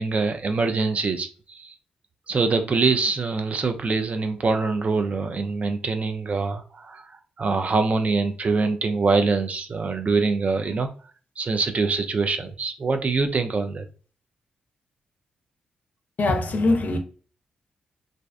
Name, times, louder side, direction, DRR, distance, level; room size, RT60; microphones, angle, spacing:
voice 1, 0.0-1.7 2.3-10.9 11.4-13.9, right 4 dB, 45° right, 0.4 m, -24 dB
voice 2, 16.2-17.0, left 2 dB, 55° left, 0.5 m, -22 dB
2.5 x 2.1 x 2.4 m
supercardioid pair, 45°, 3 cm